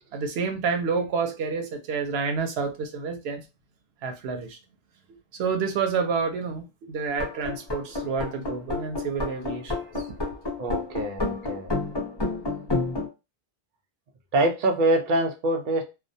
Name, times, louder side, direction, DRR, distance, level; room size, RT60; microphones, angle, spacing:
voice 1, 0.1-3.4 4.0-4.6 5.3-10.4, right 5 dB, 90° right, 0.8 m, -29 dB
sound 1, 7.1-13.1, left 3 dB, 30° left, 0.7 m, -29 dB
voice 2, 10.6-11.7 14.3-15.8, right 1 dB, 60° right, 0.7 m, -24 dB
2.3 x 2.1 x 2.6 m
omnidirectional pair, 1.0 m